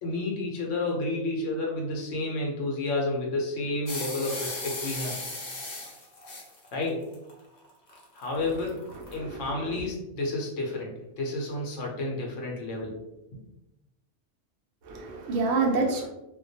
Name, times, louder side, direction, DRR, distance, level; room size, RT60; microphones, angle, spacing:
voice 1, 0.0-5.1 6.7-7.0 8.1-8.8 9.1-13.0, left 2 dB, 85° left, -1 dB, 0.9 m, -30 dB
sound 1, 3.9-9.1, left 2 dB, 50° left, 0.6 m, -37 dB
voice 2, 9.1-9.5 9.8-9.9 14.8-16.1, right 3 dB, 70° right, 0 dB, 0.8 m, -27 dB
2.3 x 2.1 x 2.6 m, 0.93 s
omnidirectional pair, 1.3 m